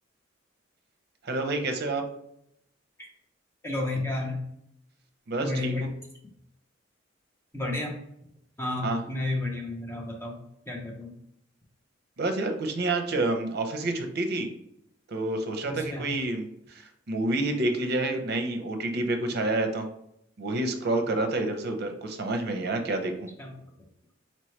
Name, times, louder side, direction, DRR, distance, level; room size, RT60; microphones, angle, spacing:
voice 1, 1.2-2.0 5.3-5.7 8.8-9.0 12.2-14.5 15.1-19.9 20.4-23.3, right 2 dB, 55° right, 5 dB, 0.6 m, -28 dB
voice 2, 3.6-4.4 5.4-5.9 7.5-7.9 8.6-10.4 10.7-11.1 15.6-16.1 23.4-23.7, left 2 dB, 15° left, -1 dB, 0.6 m, -31 dB
4.3 x 3.0 x 3.1 m, 0.76 s
head